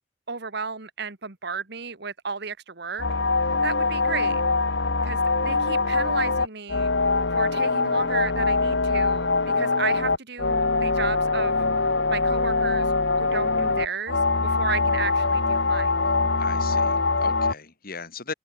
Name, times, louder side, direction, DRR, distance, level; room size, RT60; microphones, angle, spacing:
voice 1, 0.3-3.1 3.4-4.4 5.0-6.9 7.3-11.7 12.1-12.9 13.2-16.0, right 5 dB, 65° right, 1.9 m, -33 dB
sound 1, 3.0-17.5, left 3 dB, 75° left, 2.2 m, -23 dB
voice 2, 16.4-18.3, left 5 dB, 55° left, 3.2 m, -37 dB
head